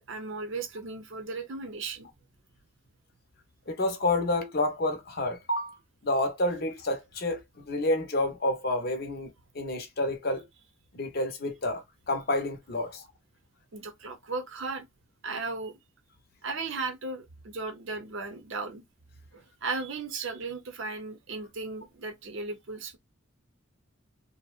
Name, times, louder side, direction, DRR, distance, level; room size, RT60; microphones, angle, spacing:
voice 1, 0.0-2.1 13.7-14.8 15.2-15.8 16.4-18.8 19.3-23.0, right 3 dB, 65° right, 0.6 m, -36 dB
voice 2, 3.7-5.8 6.0-10.5 10.9-13.0, left 2 dB, 50° left, 0.7 m, -29 dB
2.6 x 2.0 x 2.3 m
head